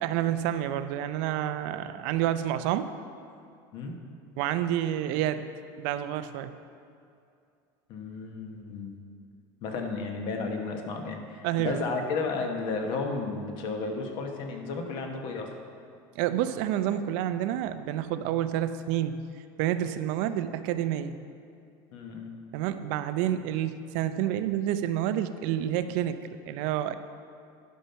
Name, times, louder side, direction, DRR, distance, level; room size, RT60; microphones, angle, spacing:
voice 1, 0.0-2.9 4.4-5.4 5.8-6.5 11.4-11.8 16.1-19.2 19.6-21.2 22.5-26.2 26.5-26.9, right 11 dB, 65° right, 11 dB, 0.5 m, -29 dB
voice 2, 7.9-8.9 9.6-15.5 21.9-22.3, left 4 dB, 50° left, 3 dB, 1.2 m, -33 dB
11.0 x 5.6 x 5.6 m, 2.5 s
cardioid pair, 160°, 11 cm